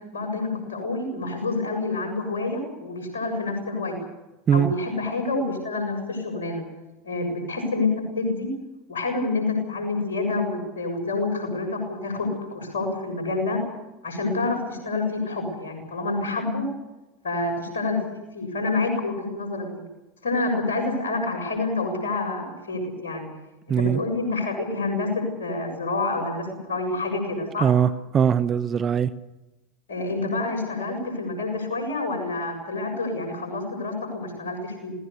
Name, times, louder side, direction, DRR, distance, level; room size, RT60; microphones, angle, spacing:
voice 1, 0.1-4.0 4.5-6.6 7.0-8.5 8.9-13.6 14.0-16.7 17.2-18.0 18.3-19.8 20.2-23.3 23.8-27.7 29.9-34.9, left 3 dB, 85° left, 3 dB, 7.1 m, -28 dB
voice 2, 23.7-24.0 27.6-29.1, right 8 dB, 35° right, 14 dB, 1.0 m, -21 dB
27.5 x 18.0 x 6.9 m, 1.0 s
hypercardioid pair, 85°, 0 cm